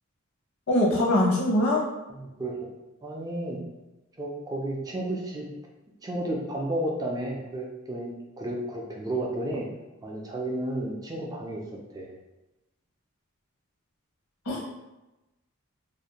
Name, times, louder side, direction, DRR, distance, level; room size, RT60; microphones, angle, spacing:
voice 1, 0.7-1.8 14.5-14.7, left 1 dB, 90° left, -3 dB, 0.8 m, -22 dB
voice 2, 2.1-2.6 3.0-3.6 4.2-5.5 6.0-9.7 10.0-11.6 11.9-12.1, right 1 dB, 20° right, -1 dB, 0.3 m, -32 dB
2.5 x 2.1 x 2.8 m, 1.0 s
head